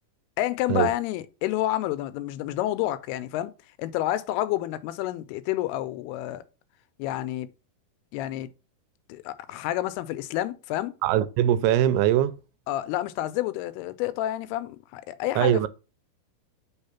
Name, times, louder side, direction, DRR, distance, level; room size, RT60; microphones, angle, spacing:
voice 1, 0.4-3.5 3.8-6.4 7.0-7.5 8.1-8.5 9.1-10.9 12.7-15.7, left 14 dB, 90° left, 2.5 m, -29 dB
voice 2, 11.0-12.4 15.4-15.7, right 11 dB, 85° right, 2.5 m, -21 dB
5.6 x 3.5 x 5.6 m
omnidirectional pair, 4.5 m